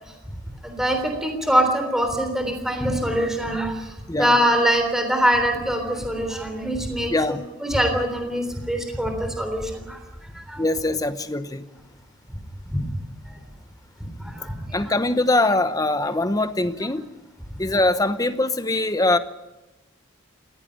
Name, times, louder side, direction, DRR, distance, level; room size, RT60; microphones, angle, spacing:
voice 1, 0.6-10.0 10.3-10.6 12.6-12.9 13.3-13.4 14.0-15.0, equal, ahead, 5 dB, 3.5 m, -24 dB
voice 2, 7.1-7.4 10.6-11.7 14.7-17.1 17.6-19.2, left 2 dB, 15° left, 11 dB, 0.9 m, -22 dB
19.5 x 16.5 x 9.8 m, 1.1 s
head